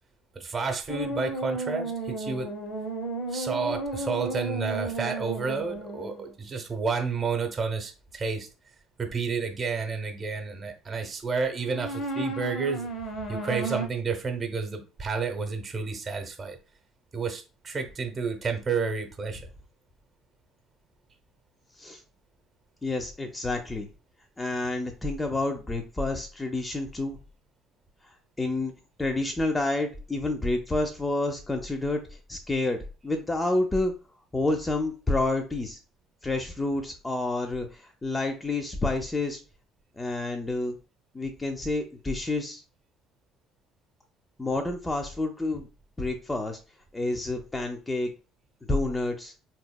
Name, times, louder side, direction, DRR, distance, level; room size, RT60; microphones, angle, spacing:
voice 1, 0.3-2.5 3.3-8.5 9.0-12.9 13.3-16.6 17.1-19.5, right 5 dB, 30° right, 5 dB, 0.9 m, -30 dB
sound 1, 0.9-6.3 11.6-13.9, right 2 dB, 50° left, 0.9 m, -33 dB
voice 2, 22.8-23.9 24.4-27.2 28.4-28.7 29.0-32.8 33.0-33.9 34.3-35.8 36.2-39.4 40.0-40.8 41.1-42.6 44.4-45.7 46.0-46.6 46.9-48.1 48.7-49.3, left 2 dB, 15° left, 4 dB, 0.6 m, -29 dB
4.0 x 3.0 x 2.2 m, 0.34 s
figure-of-eight pair, 55°, 0 cm